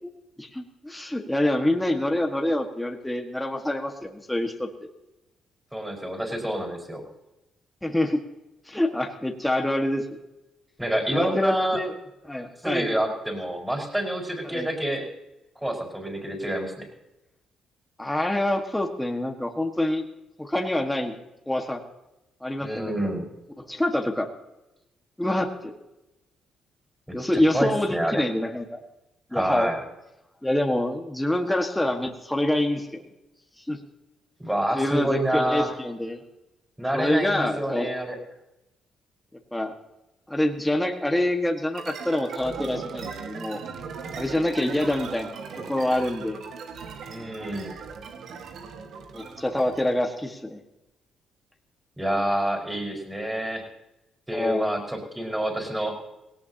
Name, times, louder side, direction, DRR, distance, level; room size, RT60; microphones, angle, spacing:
voice 1, 0.4-4.7 7.8-8.2 8.7-10.2 11.1-11.9 12.3-12.9 14.4-14.7 18.0-20.1 20.4-21.2 21.5-21.8 22.4-23.0 23.7-24.3 25.2-25.7 27.1-28.8 29.3-29.7 30.4-33.0 33.7-33.8 34.7-36.2 36.9-37.9 39.5-39.7 40.3-43.6 44.1-46.4 49.1-50.6 54.3-54.7, left 1 dB, 5° left, 2 dB, 1.6 m, -26 dB
voice 2, 5.7-7.0 10.8-11.8 12.6-15.1 15.6-16.9 22.6-23.3 27.3-28.2 29.3-29.8 34.4-35.7 36.8-38.2 47.1-47.7 52.0-53.6 54.3-56.0, right 1 dB, 10° right, 1 dB, 5.2 m, -27 dB
sound 1, 41.7-50.0, right 5 dB, 70° right, 1.7 m, -38 dB
18.5 x 18.0 x 2.9 m, 0.95 s
cardioid pair, 90°, 0 cm